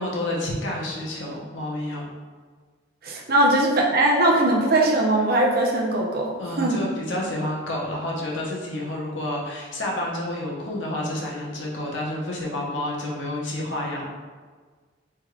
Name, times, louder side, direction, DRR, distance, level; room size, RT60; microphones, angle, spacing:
voice 1, 0.0-2.1 3.3-3.4 6.4-14.1, left 1 dB, 80° left, -3 dB, 0.9 m, -29 dB
voice 2, 3.0-6.8, right 1 dB, 55° right, -1 dB, 0.7 m, -20 dB
4.7 x 3.5 x 2.4 m, 1.5 s
head